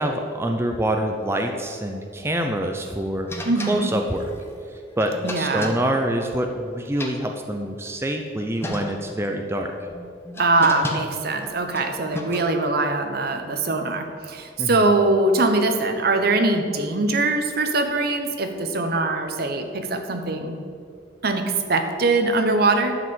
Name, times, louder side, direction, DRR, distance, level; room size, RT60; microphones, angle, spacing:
voice 1, 0.0-3.3 3.7-4.3 5.0-9.7 14.6-14.9, right 1 dB, 15° right, 3 dB, 0.6 m, -26 dB
sound 1, 3.3-6.6 6.8-7.9 8.3-8.4 8.6-9.3 9.9-12.8, left 1 dB, 15° left, 1.0 m, -34 dB
voice 2, 3.4-3.9 5.2-5.7 10.4-20.6 21.2-23.0, right 2 dB, 55° right, 6 dB, 1.0 m, -22 dB
11.5 x 5.0 x 7.6 m, 2.3 s
head